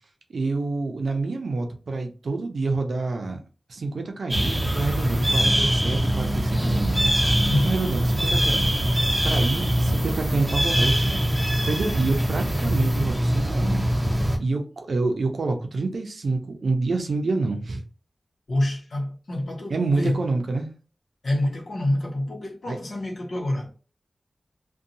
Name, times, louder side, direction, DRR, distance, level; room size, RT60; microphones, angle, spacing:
voice 1, 0.3-3.4 3.7-7.0 7.6-13.9 14.4-17.8 19.7-20.7 22.7-22.8, right 3 dB, 90° right, 0.5 m, -27 dB
sound 1, 4.3-14.4, equal, 15° right, 0.6 m, -23 dB
voice 2, 7.4-7.8 18.5-20.2 21.2-23.7, left 1 dB, 80° left, 0.8 m, -26 dB
2.6 x 2.2 x 2.7 m
wide cardioid pair, 75°, 0 cm